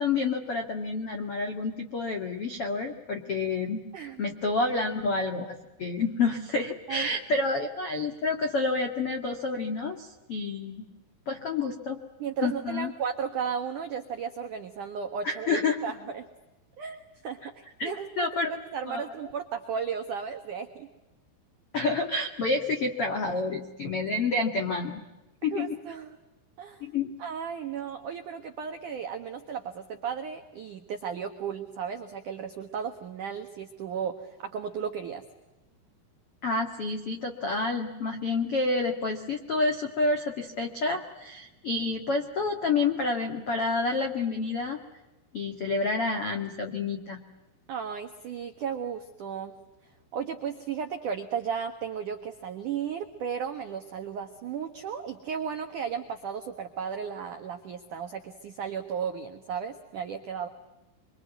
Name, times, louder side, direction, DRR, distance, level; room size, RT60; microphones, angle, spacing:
voice 1, 0.0-3.8 4.2-10.9 11.2-12.0 12.4-12.9 15.2-15.7 17.8-18.5 18.8-19.0 21.7-25.0 25.4-25.8 26.8-27.1 36.4-44.8 45.3-47.2, left 3 dB, 75° left, 4 dB, 1.3 m, -29 dB
voice 2, 3.9-4.3 6.9-7.1 12.2-16.3 16.8-20.9 25.5-26.2 26.6-26.8 27.2-35.2 47.7-49.5 50.1-60.5, right 7 dB, 85° right, 5 dB, 1.7 m, -35 dB
25.5 x 25.0 x 9.3 m, 1.1 s
omnidirectional pair, 6.0 m